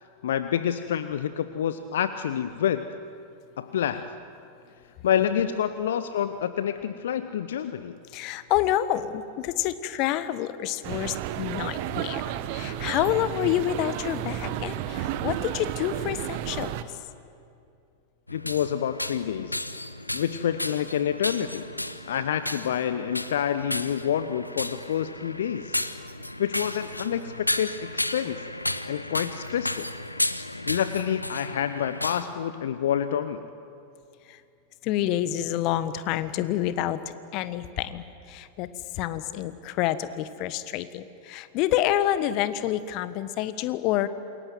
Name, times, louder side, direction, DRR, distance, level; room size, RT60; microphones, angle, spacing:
voice 1, 0.2-2.9 3.6-4.1 5.0-8.0 18.3-19.7 20.1-21.7 22.1-25.8 26.4-28.4 28.9-29.9 30.7-33.5, left 9 dB, 60° left, 11 dB, 0.9 m, -28 dB
voice 2, 8.1-16.7 34.3-34.4 34.8-37.0 37.3-38.7 38.9-44.1, left 12 dB, 40° left, 14 dB, 1.3 m, -28 dB
sound 1, 10.8-16.8, right 11 dB, 45° right, 1.2 m, -32 dB
sound 2, 18.3-32.2, left 1 dB, 85° left, 1.0 m, -33 dB
27.5 x 22.5 x 9.4 m, 2.6 s
figure-of-eight pair, 90°, 0 cm